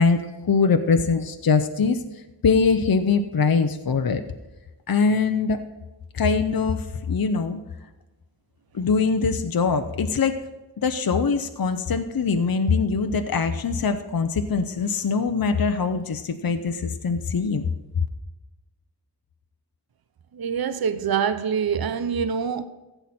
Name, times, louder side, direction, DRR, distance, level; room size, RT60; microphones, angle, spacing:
voice 1, 0.0-2.0 2.4-4.2 4.9-5.6 6.1-7.6 8.7-10.3 10.8-17.7, left 5 dB, 55° left, 0.7 m, -22 dB
voice 2, 20.3-22.6, right 7 dB, 55° right, 0.6 m, -25 dB
15.5 x 8.0 x 4.2 m
wide cardioid pair, 70°, 43 cm